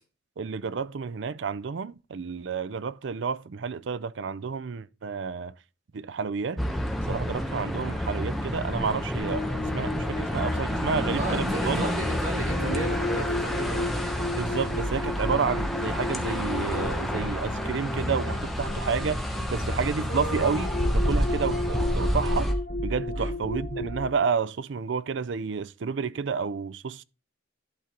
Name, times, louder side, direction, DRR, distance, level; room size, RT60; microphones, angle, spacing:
voice 1, 0.4-5.5 5.9-6.6 7.1-9.4 9.7-11.9 14.4-22.5 22.8-27.0, right 5 dB, 70° right, 0.5 m, -30 dB
sound 1, 6.6-22.5, equal, ahead, 1.0 m, -30 dB
sound 2, 9.2-24.3, left 1 dB, 50° left, 1.5 m, -33 dB
voice 2, 11.1-13.9 23.2-23.3, right 1 dB, 85° right, 5.4 m, -33 dB
11.5 x 3.8 x 4.4 m
head